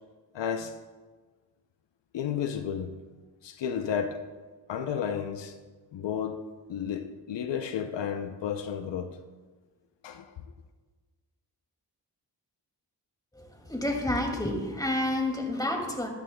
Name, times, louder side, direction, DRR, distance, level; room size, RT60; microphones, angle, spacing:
voice 1, 0.3-0.8 2.1-3.0 3.4-4.2 4.7-5.6 5.9-9.2 10.0-10.3, left 8 dB, 80° left, 0.6 m, -32 dB
voice 2, 13.3-16.1, left 1 dB, 10° left, 2.2 m, -29 dB
13.5 x 11.5 x 2.2 m
cardioid pair, 50°, 42 cm